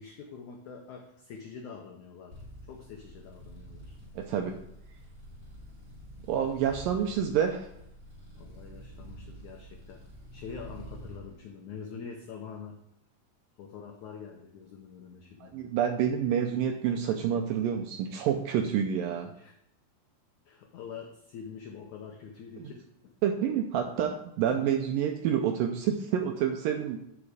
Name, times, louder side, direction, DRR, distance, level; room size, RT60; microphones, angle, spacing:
voice 1, 0.0-2.4 2.7-4.0 8.3-10.0 10.3-12.8 13.6-15.6 19.3-19.5 20.4-23.1, left 6 dB, 85° left, 2 dB, 1.7 m, -45 dB
sound 1, 2.3-11.2, equal, 30° right, 4.1 m, -48 dB
voice 2, 4.2-4.6 6.3-7.7 15.4-19.3 23.2-27.0, right 8 dB, 80° right, 4 dB, 2.1 m, -28 dB
11.0 x 5.1 x 4.9 m, 0.74 s
omnidirectional pair, 4.6 m